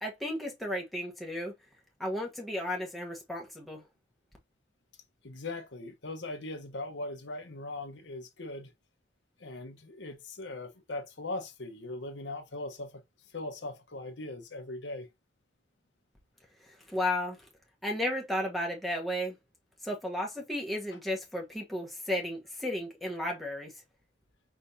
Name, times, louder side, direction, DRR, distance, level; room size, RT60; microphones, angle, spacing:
voice 1, 0.0-1.5 2.0-3.8 16.9-17.4 17.8-19.4 19.8-23.7, left 1 dB, ahead, 1.1 m, -33 dB
voice 2, 5.2-8.7 9.4-13.0 13.3-15.1, left 2 dB, 75° left, 1.1 m, -40 dB
5.1 x 3.4 x 2.7 m
head